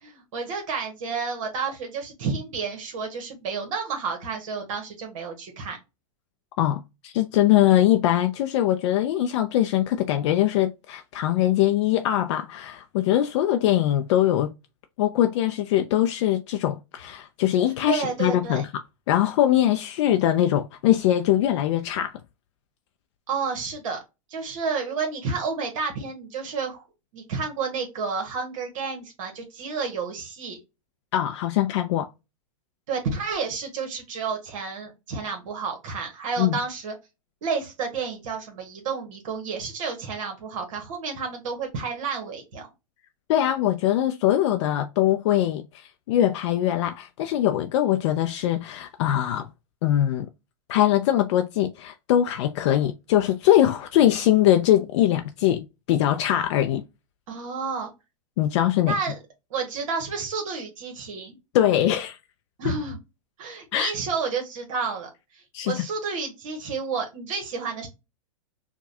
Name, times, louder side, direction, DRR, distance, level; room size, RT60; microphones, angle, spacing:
voice 1, 0.0-5.8 17.9-18.6 23.3-24.0 24.3-26.8 27.1-30.6 32.9-36.9 37.4-42.7 57.3-57.9 58.8-59.2 59.5-61.4 62.6-63.0 63.4-67.9, right 5 dB, 65° right, 1.3 m, -30 dB
voice 2, 6.6-14.5 15.0-18.7 19.1-22.2 31.1-32.1 36.4-36.6 43.3-49.5 49.8-50.3 50.7-56.8 58.4-58.9 61.5-62.2 63.7-63.9 65.5-65.8, left 12 dB, 55° left, 0.4 m, -22 dB
4.7 x 2.2 x 2.6 m
hypercardioid pair, 125°, 18 cm